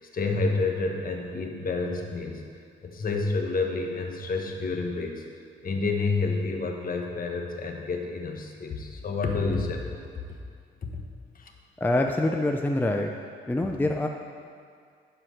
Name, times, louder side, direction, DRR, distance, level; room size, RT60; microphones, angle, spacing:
voice 1, 0.1-2.4 2.8-5.2 5.6-10.0 10.8-10.9 11.3-11.5, left 3 dB, 45° left, 2 dB, 1.3 m, -29 dB
voice 2, 11.8-13.1 13.5-14.1, left 1 dB, 10° left, 3 dB, 0.5 m, -25 dB
11.0 x 4.7 x 6.5 m, 2.2 s
cardioid pair, 90°, 20 cm